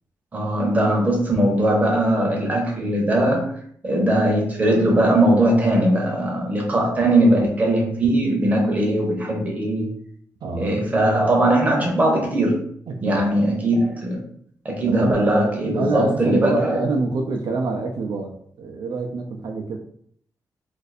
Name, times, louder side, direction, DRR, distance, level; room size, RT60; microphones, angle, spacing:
voice 1, 0.3-3.5 3.8-9.9 10.5-12.6 13.0-14.2 14.6-16.8, right 1 dB, 20° right, 0 dB, 0.7 m, -20 dB
voice 2, 10.4-10.8 12.9-13.2 14.9-15.2 15.6-19.8, right 3 dB, 80° right, 2 dB, 0.5 m, -26 dB
2.6 x 2.5 x 4.1 m, 0.64 s
wide cardioid pair, 175°, 7 cm